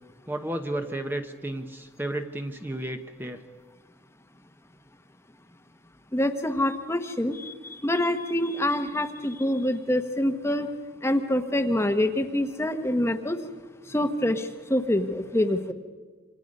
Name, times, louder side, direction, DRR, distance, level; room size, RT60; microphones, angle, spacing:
voice 1, 0.3-3.4, right 1 dB, 10° right, 5 dB, 1.0 m, -32 dB
voice 2, 6.1-10.7 11.0-13.4 13.9-15.7, left 1 dB, 15° left, 8 dB, 1.1 m, -26 dB
27.5 x 26.0 x 5.4 m, 1.4 s
head